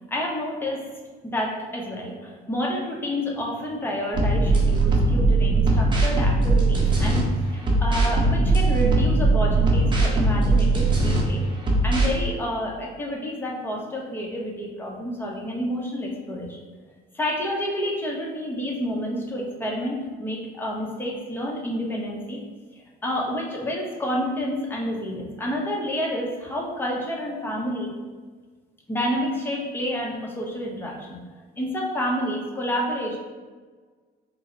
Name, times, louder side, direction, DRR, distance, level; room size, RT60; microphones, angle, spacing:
voice 1, 0.1-0.8 1.2-7.3 7.5-11.4 11.8-16.6 17.1-22.4 22.7-27.9 28.9-31.2 31.6-33.2, equal, 15° left, -2 dB, 0.8 m, -29 dB
sound 1, 4.1-7.2 7.6-11.2 11.6-12.1, right 2 dB, 30° right, 0.8 m, -20 dB
4.1 x 2.1 x 3.8 m, 1.5 s
cardioid pair, 110°, 17 cm